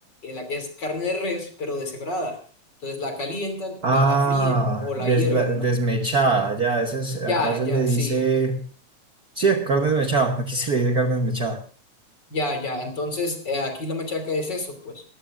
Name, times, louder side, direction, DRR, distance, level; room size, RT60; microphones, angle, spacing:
voice 1, 0.2-2.4 2.8-5.7 7.3-8.2 12.3-15.0, left 2 dB, 35° left, 6 dB, 3.3 m, -29 dB
voice 2, 3.8-8.6 9.3-11.6, right 3 dB, 80° right, 4 dB, 0.8 m, -22 dB
22.0 x 14.5 x 2.5 m, 0.40 s
omnidirectional pair, 3.5 m